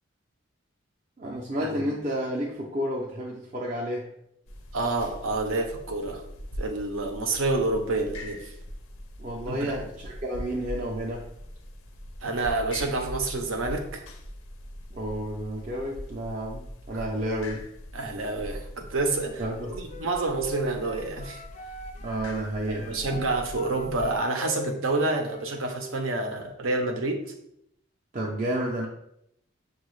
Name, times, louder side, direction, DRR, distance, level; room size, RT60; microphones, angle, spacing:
voice 1, 1.2-4.1 9.2-11.3 14.9-17.6 19.4-20.1 22.0-23.2 28.1-28.9, equal, 35° right, -3 dB, 0.5 m, -31 dB
sound 1, 4.5-24.2, equal, 90° left, 0.6 m, -42 dB
voice 2, 4.7-6.2 6.6-8.5 9.5-9.8 12.2-14.0 17.9-19.4 19.8-21.4 22.7-27.3, right 2 dB, 80° right, 4 dB, 0.7 m, -28 dB
Wind instrument woodwind instrument, 19.0-22.3 22.6-26.0, equal, 35° left, 0.3 m, -42 dB
6.1 x 2.3 x 3.1 m, 0.76 s
head